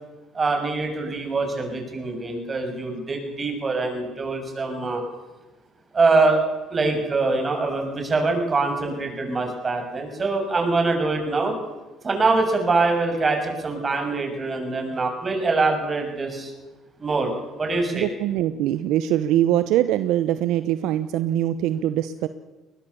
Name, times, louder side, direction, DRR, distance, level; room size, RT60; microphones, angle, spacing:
voice 1, 0.3-5.0 5.9-6.4 6.7-11.6 12.0-16.5 17.0-17.3 17.6-18.1, right 3 dB, 30° right, 4 dB, 6.7 m, -24 dB
voice 2, 17.9-22.3, right 12 dB, 75° right, 12 dB, 0.9 m, -23 dB
22.0 x 19.5 x 7.1 m, 1.1 s
supercardioid pair, 85°, 0 cm